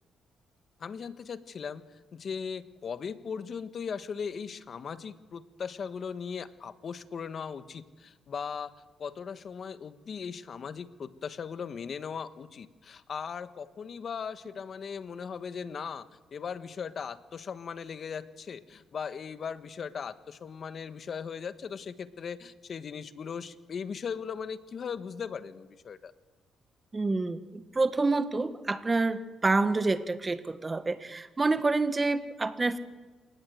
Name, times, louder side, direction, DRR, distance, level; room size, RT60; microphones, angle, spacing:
voice 1, 0.8-1.8 2.1-8.7 9.0-26.1, left 6 dB, 50° left, 11 dB, 1.4 m, -38 dB
voice 2, 26.9-32.8, right 3 dB, 25° right, 10 dB, 1.8 m, -28 dB
28.5 x 18.5 x 8.0 m, 1.3 s
cardioid pair, 90°, 0 cm